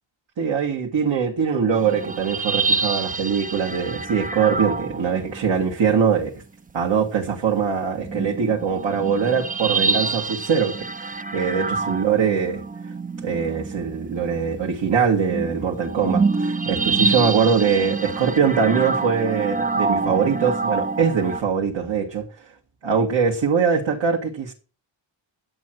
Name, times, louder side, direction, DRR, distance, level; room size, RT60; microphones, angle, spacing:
voice 1, 0.4-6.3 6.7-22.5 22.8-24.5, right 6 dB, 65° right, 1.9 m, -22 dB
sound 1, 1.7-5.7 8.0-21.4, right 4 dB, 20° right, 0.4 m, -27 dB
11.0 x 7.8 x 6.0 m
wide cardioid pair, 110°, 48 cm